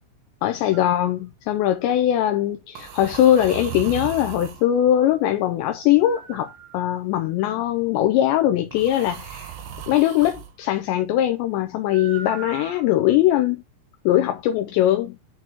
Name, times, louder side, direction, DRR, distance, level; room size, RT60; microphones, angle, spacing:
voice 1, 0.4-9.5 9.9-13.6 14.1-15.2, left 12 dB, 85° left, 2.5 m, -21 dB
sound 1, 0.7-1.0 2.7-4.7 6.0-7.1 8.7-10.5 11.9-13.1, right 9 dB, 75° right, 2.1 m, -37 dB
10.5 x 4.5 x 2.9 m
omnidirectional pair, 5.8 m